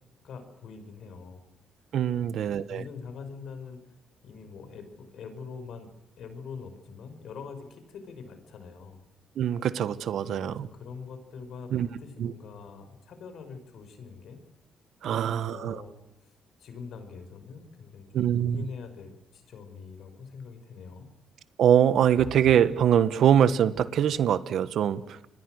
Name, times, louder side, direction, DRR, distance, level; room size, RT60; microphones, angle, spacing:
voice 1, 0.2-1.4 2.1-3.8 4.2-5.9 6.2-9.0 10.2-14.4 15.1-15.9 16.2-16.3 16.6-21.1, left 5 dB, 70° left, 9 dB, 5.8 m, -44 dB
voice 2, 1.9-2.8 9.4-10.7 11.7-11.9 12.2-12.3 15.0-15.8 18.1-18.6 21.6-25.2, right 9 dB, 70° right, 15 dB, 1.4 m, -23 dB
28.0 x 22.5 x 6.5 m, 0.89 s
cardioid pair, 90°, 0 cm